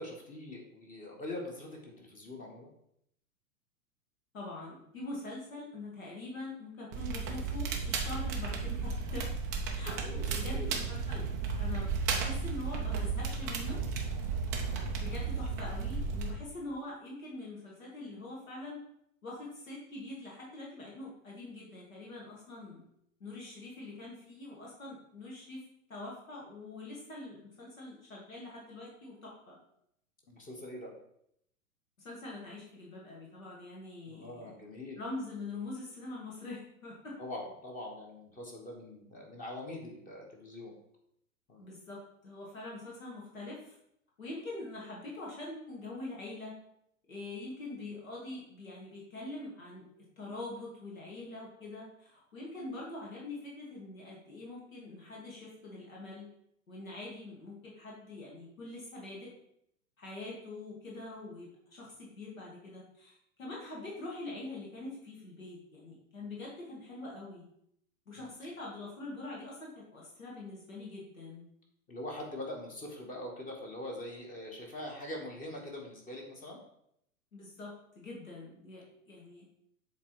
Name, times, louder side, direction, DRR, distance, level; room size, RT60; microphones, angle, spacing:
voice 1, 0.0-2.7 10.0-10.8 30.3-30.9 34.1-35.0 37.2-40.7 41.5-41.6 68.2-68.5 71.9-76.6, left 1 dB, 20° left, 0 dB, 1.3 m, -43 dB
voice 2, 4.3-9.3 9.7-11.2 11.5-13.8 15.0-18.8 19.2-22.8 23.2-29.6 32.0-34.5 35.0-37.2 41.6-43.8 44.2-46.5 47.1-49.8 50.2-56.3 56.7-59.3 60.0-67.4 68.1-71.5 77.3-79.4, left 2 dB, 70° left, -4 dB, 2.3 m, -44 dB
Crackle, 6.9-16.3, right 5 dB, 15° right, 0.3 m, -34 dB
7.4 x 3.7 x 4.6 m, 0.74 s
figure-of-eight pair, 100°, 42 cm